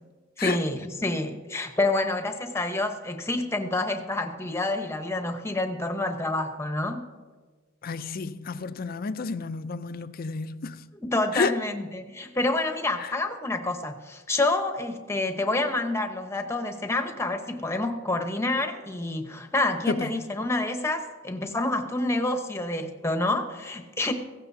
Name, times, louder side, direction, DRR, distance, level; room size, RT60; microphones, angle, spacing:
voice 1, 0.4-7.0 11.0-24.1, left 2 dB, 15° left, 0.9 m, -28 dB
voice 2, 7.8-10.9 11.3-11.5 13.0-13.1 19.9-20.1, left 4 dB, 45° left, 0.5 m, -30 dB
16.0 x 15.5 x 2.7 m
head